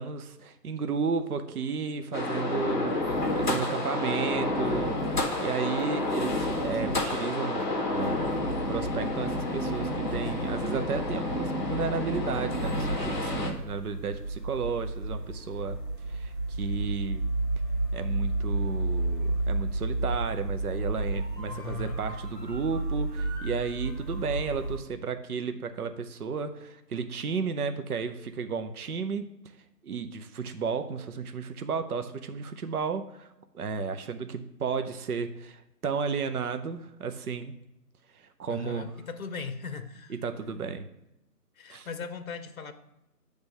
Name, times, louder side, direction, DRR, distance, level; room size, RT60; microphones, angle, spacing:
voice 1, 0.0-5.0 5.4-7.6 7.9-8.2 8.7-15.8 16.1-17.3 17.9-29.6 29.8-33.3 33.5-37.5 38.1-38.9 40.1-40.9 41.7-41.9, right 5 dB, 65° right, 9 dB, 0.7 m, -33 dB
sound 1, 2.1-13.5, left 1 dB, 30° left, 0.9 m, -29 dB
sound 2, 12.5-24.8, right 2 dB, 85° right, 1.8 m, -32 dB
voice 2, 21.5-22.0 38.5-40.1 41.6-42.7, left 5 dB, 60° left, 10 dB, 0.7 m, -38 dB
8.1 x 3.4 x 5.3 m, 0.89 s
figure-of-eight pair, 170°, 48 cm